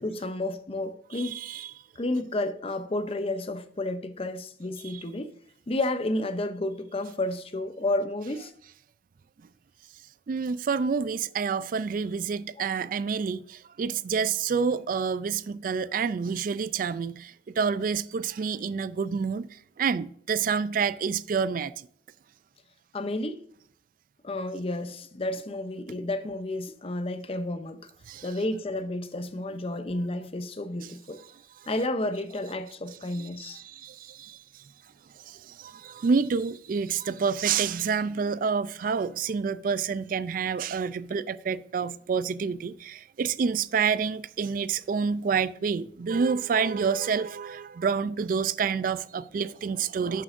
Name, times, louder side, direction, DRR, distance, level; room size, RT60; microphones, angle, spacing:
voice 1, 0.0-1.4 2.0-5.3 5.7-8.5 12.6-12.7 22.9-23.4 24.2-27.9 28.2-31.2 31.7-33.6, left 1 dB, 30° left, 0.6 m, -31 dB
voice 2, 1.1-1.7 4.8-5.0 10.3-21.9 28.1-28.3 30.8-30.9 33.1-34.6 35.2-50.2, right 6 dB, 45° right, 0.3 m, -28 dB
11.0 x 7.6 x 2.5 m
head